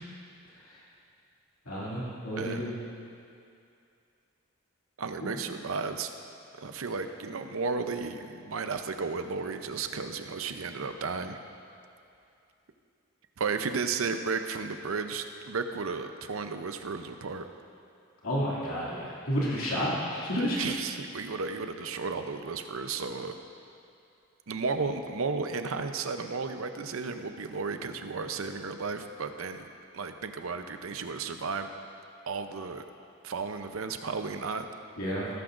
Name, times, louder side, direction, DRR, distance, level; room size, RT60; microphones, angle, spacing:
voice 1, 1.7-2.7 18.2-20.6 35.0-35.3, equal, 90° left, -7 dB, 2.5 m, -31 dB
voice 2, 5.0-6.1 6.6-11.4 13.4-17.5 20.4-23.3 24.5-29.6 29.9-31.7 32.3-32.9 33.2-34.7, right 4 dB, 75° right, 7 dB, 0.7 m, -33 dB
15.5 x 14.0 x 2.6 m, 2.5 s
head